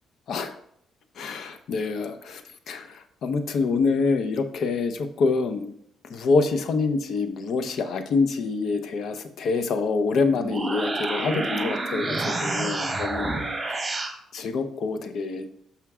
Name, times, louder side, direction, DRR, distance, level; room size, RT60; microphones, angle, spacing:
voice 1, 1.2-5.7 6.1-13.8 14.3-15.5, left 4 dB, 70° left, 9 dB, 0.7 m, -26 dB
sound 1, 10.3-14.2, right 2 dB, 20° right, 1.0 m, -29 dB
5.8 x 5.8 x 3.6 m, 0.68 s
cardioid pair, 90°, 0 cm